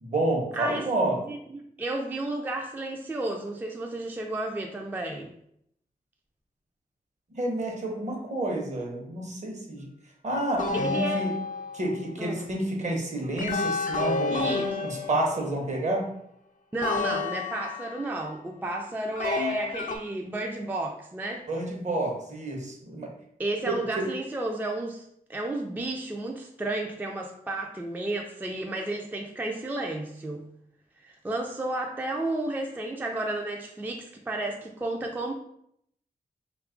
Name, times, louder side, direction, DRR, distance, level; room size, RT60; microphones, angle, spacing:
voice 1, 0.0-1.2 7.3-9.9 10.2-11.3 11.7-14.5 14.8-16.1 21.5-23.1 23.7-24.1, right 1 dB, 50° right, 0 dB, 0.9 m, -29 dB
voice 2, 0.5-0.9 1.3-5.3 10.8-11.2 12.2-12.4 14.3-14.8 15.1-15.2 16.7-21.5 23.4-30.4 31.0-35.3, right 2 dB, 10° right, 1 dB, 0.3 m, -32 dB
Perky Aalto, 10.6-12.0 13.4-15.7 16.8-18.2 19.1-20.0, left 4 dB, 60° left, 0.4 m, -30 dB
2.8 x 2.3 x 3.7 m, 0.72 s
cardioid pair, 70°, 15 cm